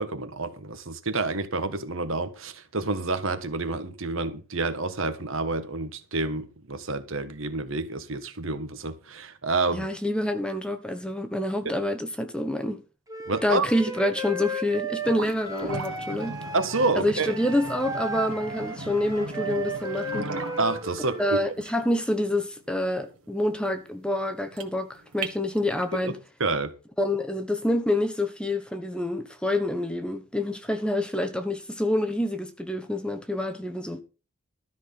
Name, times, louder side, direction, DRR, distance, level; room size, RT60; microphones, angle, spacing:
voice 1, 0.0-9.9 13.3-13.7 16.5-17.3 20.6-21.4 26.0-26.1 26.4-26.7, right 3 dB, 60° right, 1.5 m, -28 dB
voice 2, 9.7-12.8 13.4-16.4 16.9-20.3 21.2-26.2 27.0-34.0, left 1 dB, 5° left, 1.2 m, -27 dB
Wind instrument woodwind instrument, 13.1-21.4, right 2 dB, 15° right, 1.7 m, -35 dB
sound 1, 15.0-26.0, right 2 dB, 85° right, 1.8 m, -38 dB
13.0 x 6.2 x 7.0 m
head